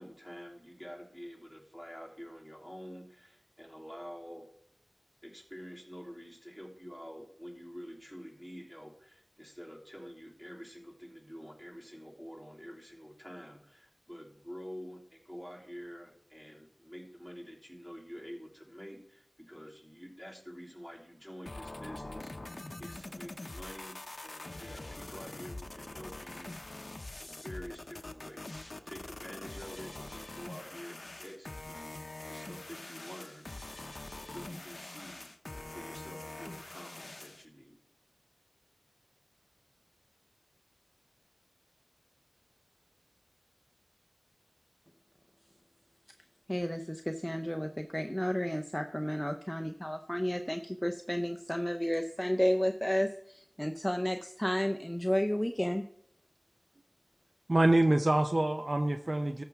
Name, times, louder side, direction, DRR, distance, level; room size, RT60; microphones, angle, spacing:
voice 1, 0.0-4.5 5.2-26.8 27.2-31.9 32.3-33.7 34.3-35.3 35.7-37.8, equal, 5° right, -3 dB, 3.1 m, -48 dB
sound 1, 21.5-37.5, left 2 dB, 55° left, 0.7 m, -44 dB
voice 2, 46.5-55.9, equal, 10° left, 5 dB, 0.5 m, -32 dB
voice 3, 57.5-59.4, right 1 dB, 50° right, 7 dB, 0.5 m, -26 dB
13.5 x 5.8 x 3.5 m, 0.71 s
wide cardioid pair, 50°, 0 cm